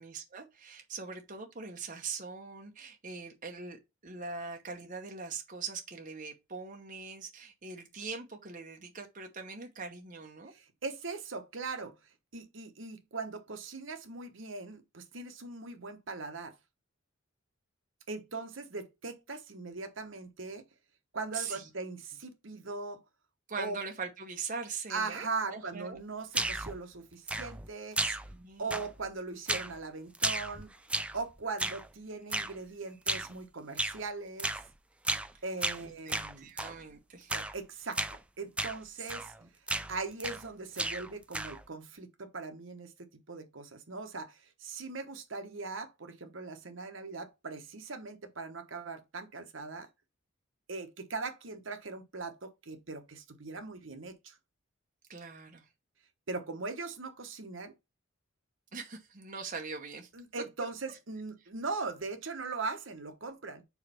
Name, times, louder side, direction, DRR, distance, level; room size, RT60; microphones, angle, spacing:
voice 1, 0.0-10.5 21.3-21.7 23.5-26.0 28.0-28.8 35.8-37.3 39.0-39.1 39.4-39.5 55.1-55.6 58.7-60.1, right 5 dB, 40° right, 1.0 m, -42 dB
voice 2, 10.5-11.9 12.3-16.6 18.1-20.6 21.1-23.0 23.6-23.8 24.9-28.0 28.6-30.7 31.1-34.5 35.4-36.5 37.3-38.0 38.4-39.3 39.9-49.9 50.7-54.3 56.3-57.7 60.1-63.6, right 3 dB, 65° right, 1.1 m, -40 dB
sound 1, 26.3-26.8 27.3-27.7 28.0-28.4 28.7-29.1 29.5-29.8 30.1-31.2 31.6-31.9 32.3-32.6 33.1-33.3 33.8-34.0 34.4-34.7 35.0-35.3 35.6-36.8 37.3-37.6 37.9-38.2 38.6-38.8 39.1-39.4 39.7-40.5 40.8-41.6, right 2 dB, 5° right, 0.3 m, -34 dB
4.8 x 4.3 x 5.6 m
head